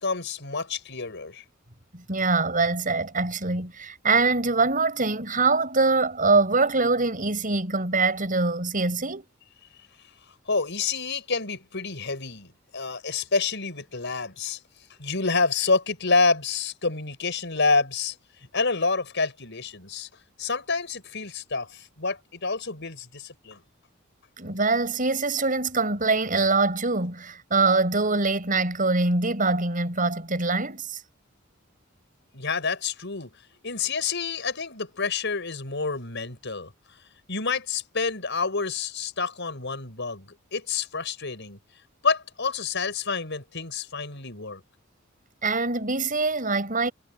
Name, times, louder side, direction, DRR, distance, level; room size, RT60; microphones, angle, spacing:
voice 1, 0.0-1.4 10.5-14.6 15.0-18.1 18.4-20.1 20.4-23.6 32.3-33.3 33.6-36.7 37.3-41.6 42.0-44.6, left 4 dB, 60° left, 6.0 m, -28 dB
voice 2, 1.9-9.3 24.4-31.0 45.4-46.9, right 3 dB, 40° right, 7.2 m, -24 dB
head